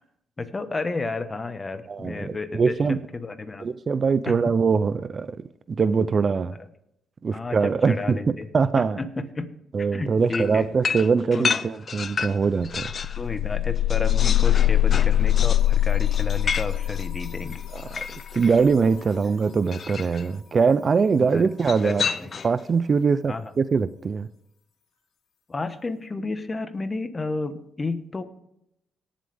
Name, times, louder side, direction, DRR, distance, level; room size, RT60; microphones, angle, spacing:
voice 1, 0.4-2.7 3.1-3.7 4.2-4.4 7.3-8.5 8.8-10.7 11.3-11.5 13.2-17.6 21.2-21.6 21.8-22.3 23.3-23.5 25.5-28.2, left 3 dB, 25° left, 10 dB, 1.3 m, -32 dB
voice 2, 1.9-3.0 3.6-5.4 5.7-6.6 7.2-9.0 9.7-12.9 17.7-22.0 22.4-24.3, right 5 dB, 40° right, 15 dB, 0.5 m, -22 dB
sound 1, 10.3-13.2 13.6-18.6 19.7-20.3 21.6-22.6, left 5 dB, 45° left, 0.6 m, -31 dB
sound 2, 12.1-12.2 12.5-19.3, left 12 dB, 85° left, 2.5 m, -23 dB
18.5 x 7.5 x 3.5 m, 0.79 s
cardioid pair, 90°, 0 cm